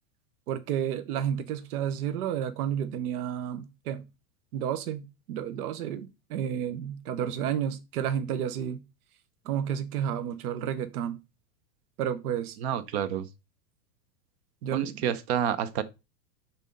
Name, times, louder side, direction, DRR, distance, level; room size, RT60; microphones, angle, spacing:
voice 1, 0.5-4.0 4.5-8.8 9.4-11.2 12.0-12.6 14.6-15.0, right 9 dB, 65° right, 1.0 m, -31 dB
voice 2, 12.6-13.3 14.7-15.8, right 9 dB, 45° right, 0.7 m, -28 dB
6.3 x 3.9 x 5.2 m
supercardioid pair, 160°, 48 cm